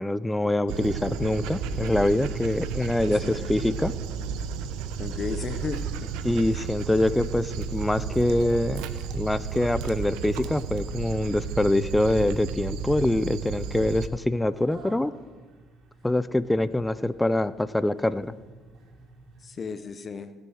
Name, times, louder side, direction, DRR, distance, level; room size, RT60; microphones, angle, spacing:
voice 1, 0.0-3.9 6.2-8.8 9.1-15.1 16.0-18.3, left 1 dB, 10° left, 15 dB, 0.6 m, -25 dB
sound 1, 0.7-19.5, right 1 dB, 65° right, 4.3 m, -54 dB
Dog, 0.7-14.1, right 6 dB, 90° right, 0.9 m, -33 dB
voice 2, 3.2-3.5 5.0-6.1 6.5-6.6 19.4-20.3, left 5 dB, 40° left, 10 dB, 1.0 m, -34 dB
19.0 x 7.8 x 6.5 m, 1.3 s
supercardioid pair, 85°, 0 cm